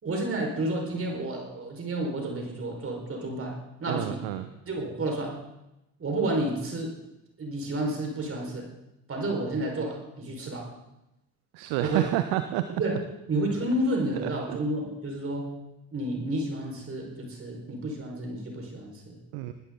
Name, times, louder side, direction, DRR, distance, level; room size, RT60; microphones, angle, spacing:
voice 1, 0.0-4.2 4.7-5.4 6.0-7.0 7.4-8.7 9.1-10.7 11.8-12.1 12.7-13.0 13.3-15.5 15.9-19.2, right 1 dB, 30° right, 1 dB, 5.1 m, -30 dB
voice 2, 3.9-4.5 11.5-12.7 14.1-14.6 19.3-19.5, right 14 dB, 55° right, 10 dB, 1.0 m, -29 dB
20.0 x 14.5 x 4.0 m, 0.91 s
figure-of-eight pair, 55°, 44 cm